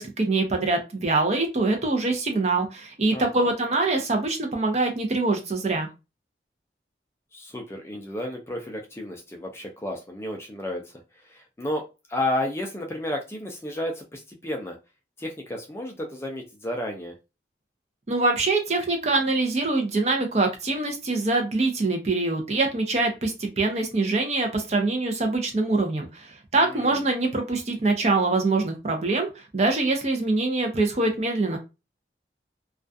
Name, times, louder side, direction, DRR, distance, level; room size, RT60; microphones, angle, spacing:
voice 1, 0.0-5.9 18.1-31.6, right 3 dB, 35° right, 3 dB, 0.5 m, -24 dB
voice 2, 3.1-3.5 7.3-10.9 11.2-11.8 12.1-14.8 15.2-17.1 26.6-27.0, left 1 dB, 15° left, 2 dB, 0.3 m, -32 dB
2.3 x 2.3 x 2.5 m, 0.27 s
head